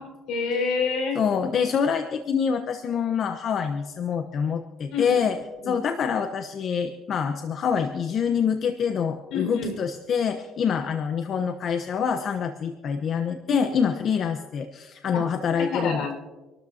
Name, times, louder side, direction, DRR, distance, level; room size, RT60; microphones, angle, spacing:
voice 1, 0.0-1.2 4.9-5.2 5.6-5.8 9.3-9.8 13.5-13.9 15.1-15.3 15.6-16.1, left 4 dB, 80° left, 3 dB, 5.4 m, -28 dB
voice 2, 1.1-5.4 5.6-16.1, left 7 dB, 55° left, 6 dB, 1.0 m, -26 dB
26.5 x 13.0 x 2.9 m, 1.2 s
cardioid pair, 100°, 0 cm